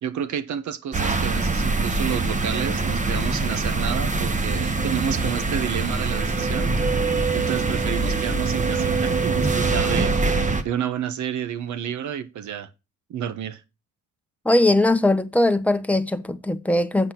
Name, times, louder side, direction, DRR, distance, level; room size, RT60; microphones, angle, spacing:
voice 1, 0.0-6.8 7.3-10.1 10.6-12.7 13.1-13.6, right 9 dB, 70° right, 1.2 m, -30 dB
sound 1, 0.9-10.6, right 3 dB, 25° right, 1.2 m, -23 dB
voice 2, 14.4-17.1, left 1 dB, 5° left, 1.0 m, -20 dB
8.1 x 5.7 x 5.9 m
cardioid pair, 90°, 30 cm